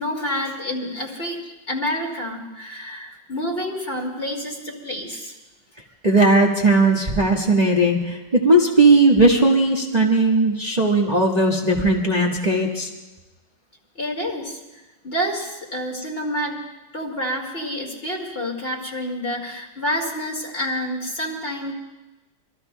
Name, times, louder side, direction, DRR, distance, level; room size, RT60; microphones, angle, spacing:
voice 1, 0.0-1.4 1.7-5.4 14.0-14.6 15.0-16.7 16.9-21.7, equal, 30° left, 0 dB, 2.3 m, -28 dB
voice 2, 6.0-12.9, right 2 dB, 25° right, -2 dB, 1.4 m, -17 dB
26.5 x 22.5 x 2.2 m, 1.1 s
omnidirectional pair, 2.0 m